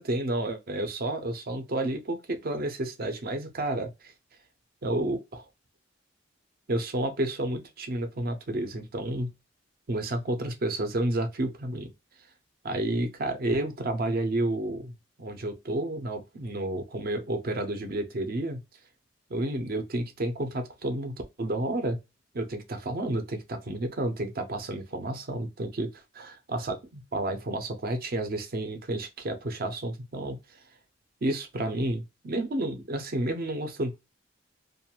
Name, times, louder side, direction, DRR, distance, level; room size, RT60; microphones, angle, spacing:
voice 1, 0.0-3.9 4.8-5.4 6.7-9.3 9.9-11.9 12.6-14.9 15.2-18.6 19.3-22.0 22.3-25.9 26.1-30.4 31.2-34.0, right 1 dB, 50° right, 0.7 m, -30 dB
2.5 x 2.4 x 2.8 m
head